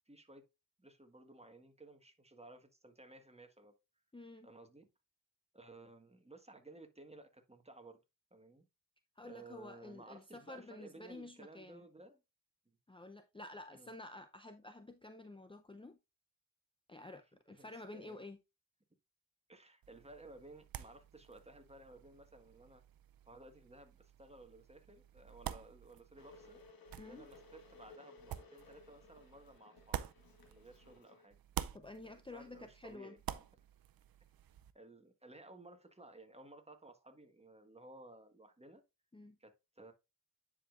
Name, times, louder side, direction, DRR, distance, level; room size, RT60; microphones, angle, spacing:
voice 1, 0.1-0.5 0.8-3.7 4.4-4.9 5.5-8.0 8.3-8.7 9.2-12.2 13.7-13.9 17.5-18.3 19.5-22.8 23.3-26.6 27.0-30.0 30.5-31.4 32.0-33.4 34.7-38.8 39.4-39.9, right 2 dB, 20° right, 1.6 m, -57 dB
voice 2, 4.1-4.5 9.2-11.9 12.9-16.0 16.9-18.4 27.0-27.3 31.7-33.2 39.1-39.4, left 2 dB, 15° left, 0.6 m, -51 dB
sound 1, 19.8-31.0 31.3-34.7, right 11 dB, 85° right, 0.6 m, -49 dB
Water / Boiling, 26.2-31.3, left 3 dB, 90° left, 1.6 m, -60 dB
9.9 x 5.0 x 2.5 m
cardioid pair, 55°, 34 cm